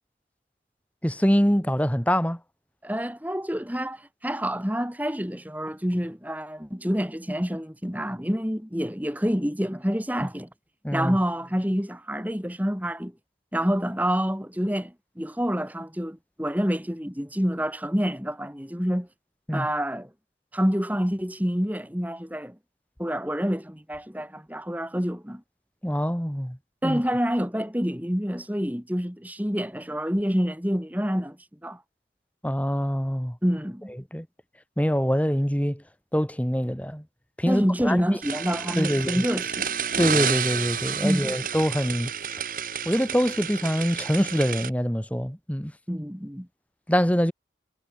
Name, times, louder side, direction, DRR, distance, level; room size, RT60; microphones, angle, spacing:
voice 1, 1.0-2.4 10.8-11.2 19.5-19.7 25.8-26.6 26.8-27.0 32.4-33.4 34.1-34.3 34.8-35.8 36.1-37.0 37.4-38.2 38.8-39.2 40.0-42.1 42.8-45.7 46.9-47.3, equal, 10° left, 2.5 m, -24 dB
voice 2, 2.8-10.5 10.9-13.1 13.5-19.1 19.5-20.1 20.5-22.6 23.0-25.4 26.8-31.4 31.6-31.8 33.4-33.9 37.5-39.7 41.0-41.3 45.9-46.5, equal, 10° right, 3.9 m, -27 dB
sound 1, 38.2-44.7, right 7 dB, 50° right, 4.5 m, -30 dB
head